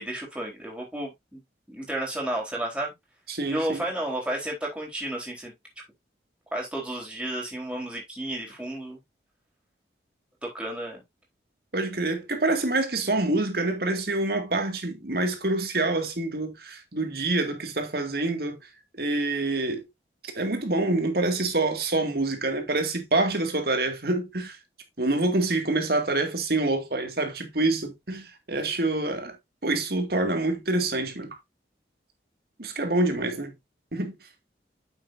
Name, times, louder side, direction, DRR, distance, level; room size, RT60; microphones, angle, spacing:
voice 1, 0.0-1.4 1.7-2.9 3.5-5.5 6.5-9.0 10.4-11.0, right 1 dB, 5° right, 3.9 m, -32 dB
voice 2, 3.3-3.8 11.7-18.6 19.0-19.8 20.3-24.6 25.0-29.4 29.6-31.4 32.6-33.5 33.9-34.2, right 2 dB, 60° right, 2.1 m, -26 dB
9.3 x 7.0 x 2.6 m
head